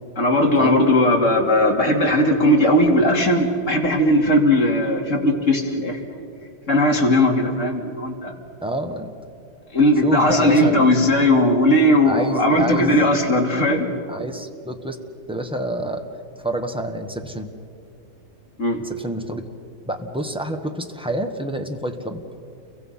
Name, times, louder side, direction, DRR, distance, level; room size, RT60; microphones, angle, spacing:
voice 1, 0.2-6.2 6.7-8.3 9.7-13.9 18.6-18.8, left 1 dB, 35° left, 0 dB, 3.0 m, -18 dB
voice 2, 8.6-9.1 10.0-11.0 12.1-13.1 14.1-15.0 15.3-16.0 16.4-17.5 18.8-19.4 19.8-22.2, right 1 dB, 5° right, 4 dB, 1.2 m, -28 dB
30.0 x 23.5 x 5.7 m, 2.5 s
omnidirectional pair, 2.2 m